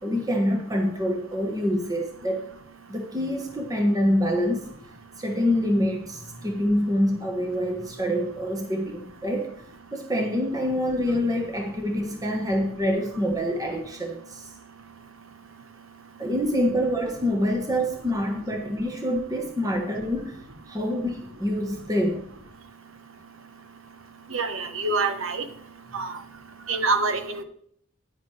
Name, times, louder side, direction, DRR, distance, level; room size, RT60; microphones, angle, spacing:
voice 1, 0.0-2.4 2.9-4.7 5.2-9.5 9.9-14.5 16.2-20.4 20.7-22.3, equal, 15° right, 2 dB, 1.2 m, -26 dB
voice 2, 24.3-25.4 25.9-26.1 26.7-27.4, right 3 dB, 75° right, 9 dB, 1.1 m, -26 dB
10.0 x 9.8 x 3.3 m, 0.64 s
head